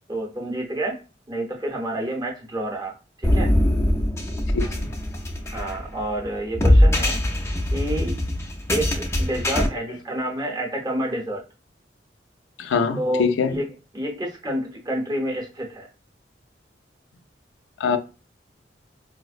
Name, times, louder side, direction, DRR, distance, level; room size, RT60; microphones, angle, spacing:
voice 1, 0.1-1.0 1.3-3.5 5.5-7.2 7.7-8.2 8.7-11.4 13.0-13.7 13.9-15.9, right 1 dB, 20° right, 0.7 m, -29 dB
sound 1, 3.2-9.7, left 1 dB, 15° left, 0.4 m, -21 dB
voice 2, 12.6-13.6 17.8-18.0, left 5 dB, 90° left, 0.4 m, -23 dB
4.8 x 2.0 x 2.4 m
head